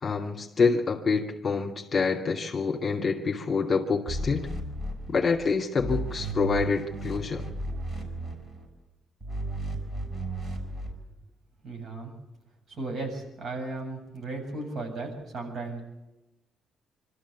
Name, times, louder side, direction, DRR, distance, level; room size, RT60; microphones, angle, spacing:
voice 1, 0.0-4.5 5.1-7.5, left 4 dB, 35° left, 1 dB, 2.5 m, -26 dB
sound 1, 4.1-5.5 5.8-8.7 9.2-10.9, right 1 dB, 30° right, 6.8 m, -34 dB
voice 2, 11.6-12.1 12.7-15.8, right 2 dB, 60° right, 2 dB, 7.6 m, -35 dB
25.5 x 13.5 x 8.5 m, 1.0 s
cardioid pair, 90°, 0 cm